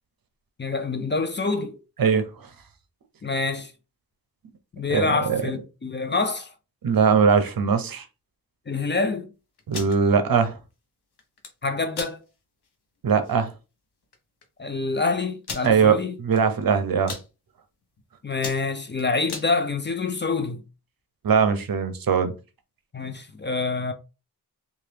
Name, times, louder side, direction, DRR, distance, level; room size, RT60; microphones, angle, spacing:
voice 1, 0.6-1.8 3.2-3.7 4.7-6.5 8.7-9.3 11.6-12.2 14.6-16.1 18.2-20.6 22.9-23.9, left 4 dB, 30° left, 0.4 m, -26 dB
voice 2, 4.9-5.4 6.8-8.0 9.7-10.6 13.0-13.5 15.6-17.1 21.2-22.3, right 6 dB, 65° right, 0.6 m, -21 dB
sound 1, 9.6-10.0 11.2-11.5 11.9-12.1 12.6-12.7 13.1-13.3 14.1-14.2 14.4-14.5 15.4-15.7 16.3-16.6 16.9-17.3 17.8-18.0 18.3-19.5, left 4 dB, 90° left, 0.7 m, -35 dB
2.9 x 2.4 x 3.2 m
wide cardioid pair, 100°, 38 cm